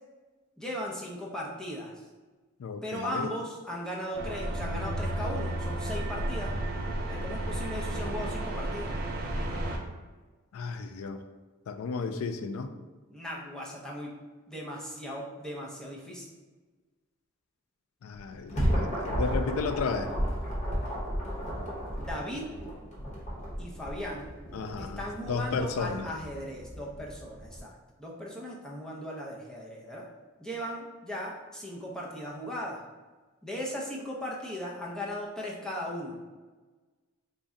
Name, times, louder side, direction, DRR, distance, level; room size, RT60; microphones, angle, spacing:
voice 1, 0.6-1.9 2.8-6.6 7.1-8.9 13.1-14.1 14.5-16.3 22.0-22.5 23.6-24.3 24.8-27.7 28.0-30.1 30.4-32.8 33.4-36.2, equal, 5° left, -4 dB, 0.5 m, -37 dB
voice 2, 2.6-3.3 10.5-11.2 11.7-12.7 18.0-20.1 24.5-25.0 25.3-26.1, left 4 dB, 85° left, 9 dB, 0.3 m, -33 dB
sound 1, 4.1-9.8, right 1 dB, 45° right, 0.5 m, -32 dB
sound 2, 18.1-27.6, equal, 35° left, 1.0 m, -33 dB
4.0 x 2.2 x 3.6 m, 1.3 s
head